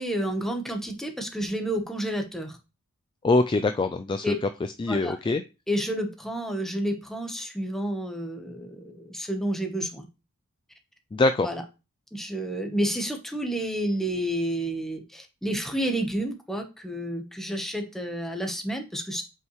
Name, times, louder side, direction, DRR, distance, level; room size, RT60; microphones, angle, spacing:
voice 1, 0.0-2.6 4.2-4.3 4.9-5.3 5.7-10.1 11.4-11.6 12.1-19.2, right 1 dB, ahead, 4 dB, 1.2 m, -30 dB
voice 2, 3.2-4.3 4.8-5.4 11.1-11.5, left 2 dB, 20° left, 8 dB, 0.3 m, -23 dB
7.6 x 5.5 x 3.2 m, 0.29 s
head